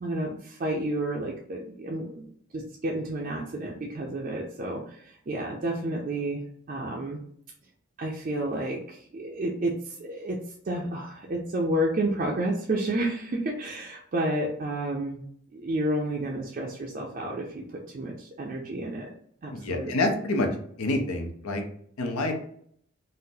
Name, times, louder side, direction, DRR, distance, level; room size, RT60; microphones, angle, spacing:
voice 1, 0.0-2.3 2.5-6.4 6.7-7.2 8.0-10.4 10.6-15.2 15.5-19.1 19.4-19.9, right 1 dB, 40° right, -2 dB, 0.4 m, -30 dB
voice 2, 19.5-20.5 20.8-21.6 22.0-22.3, left 2 dB, 85° left, 4 dB, 0.6 m, -27 dB
3.7 x 2.0 x 2.7 m, 0.63 s
head